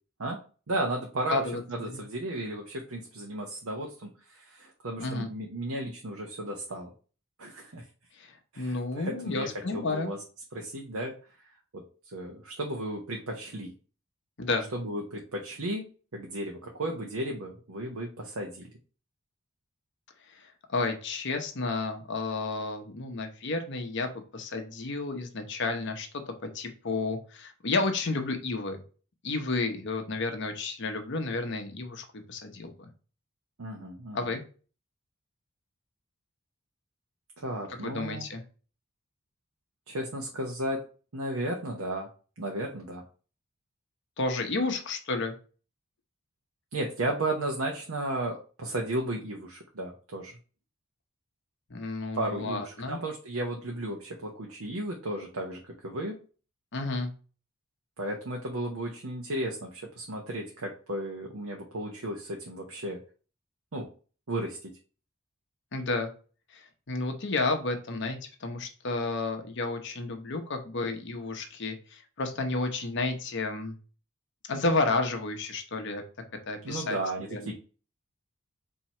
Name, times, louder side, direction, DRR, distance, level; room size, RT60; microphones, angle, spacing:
voice 1, 0.7-1.4 1.7-6.9 7.4-7.8 8.5-10.2 10.5-11.1 11.7-13.7 14.7-15.8 16.1-18.7 33.6-34.3 37.4-38.3 39.9-40.8 41.1-42.1 42.4-43.0 46.7-50.4 52.1-56.2 58.0-63.0 63.7-63.9 64.3-64.7 76.6-77.5, right 1 dB, 80° right, 1 dB, 0.9 m, -34 dB
voice 2, 1.3-1.6 1.9-2.0 5.0-5.3 8.2-10.1 14.4-14.7 20.3-28.8 29.2-32.9 34.1-34.4 37.8-38.4 44.2-45.3 51.7-53.0 56.7-57.1 65.7-66.1 66.5-73.8 74.5-76.0 76.5-77.5, left 3 dB, 55° left, 5 dB, 0.9 m, -31 dB
4.4 x 2.8 x 4.3 m, 0.37 s
head